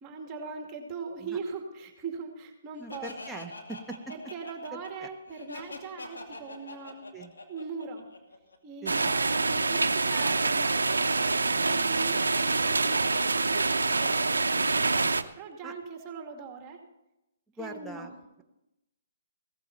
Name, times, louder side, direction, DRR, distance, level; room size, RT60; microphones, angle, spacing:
voice 1, 0.0-3.1 4.1-7.0 7.5-8.1 8.6-11.1 11.5-15.0 15.4-16.8 17.6-18.1, right 5 dB, 25° right, 3 dB, 2.4 m, -40 dB
voice 2, 2.8-4.0 4.7-5.1 7.1-7.3 8.8-9.1 15.6-15.7 17.6-18.1, right 2 dB, 5° right, 1 dB, 1.2 m, -42 dB
Laughter, 2.9-8.6, left 2 dB, 85° left, 2.5 m, -44 dB
sound 1, 8.9-15.2, right 3 dB, 90° right, 0.7 m, -26 dB
16.5 x 14.5 x 4.2 m, 0.90 s
hypercardioid pair, 135°, 0 cm